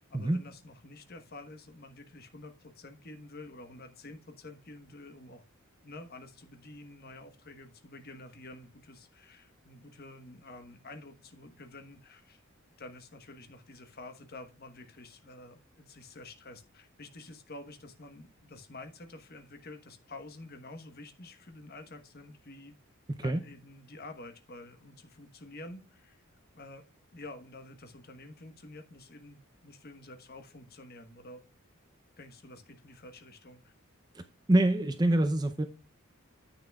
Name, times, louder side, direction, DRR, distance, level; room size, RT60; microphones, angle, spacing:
voice 1, 0.0-5.4 5.8-12.4 12.8-22.8 23.2-26.2 26.5-26.9 27.1-31.4 32.2-33.7, left 2 dB, 45° left, 1.2 m, -49 dB
voice 2, 34.5-35.7, right 1 dB, 20° right, 0.5 m, -25 dB
9.8 x 8.7 x 2.3 m
head